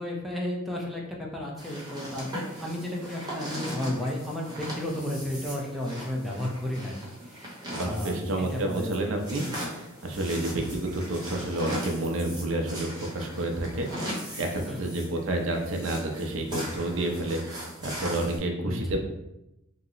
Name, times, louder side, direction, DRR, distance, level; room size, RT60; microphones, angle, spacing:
voice 1, 0.0-7.0 7.2-7.5 7.8-9.5 14.7-14.9 18.6-18.8, left 1 dB, ahead, -2 dB, 0.4 m, -33 dB
sound 1, 1.6-18.4, equal, 20° right, 0.8 m, -39 dB
voice 2, 7.7-19.0, right 1 dB, 75° right, 3 dB, 0.5 m, -30 dB
2.8 x 2.0 x 3.7 m, 0.89 s
head